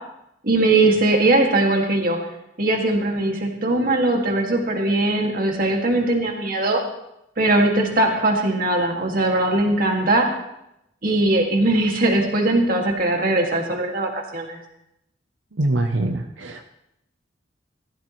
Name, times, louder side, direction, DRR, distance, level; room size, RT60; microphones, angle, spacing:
voice 1, 0.4-2.2 2.6-6.8 7.4-10.3 11.0-14.6, right 2 dB, 50° right, 1 dB, 2.2 m, -20 dB
voice 2, 15.6-16.6, right 2 dB, 85° right, 5 dB, 0.8 m, -23 dB
16.0 x 14.0 x 3.2 m, 0.83 s
head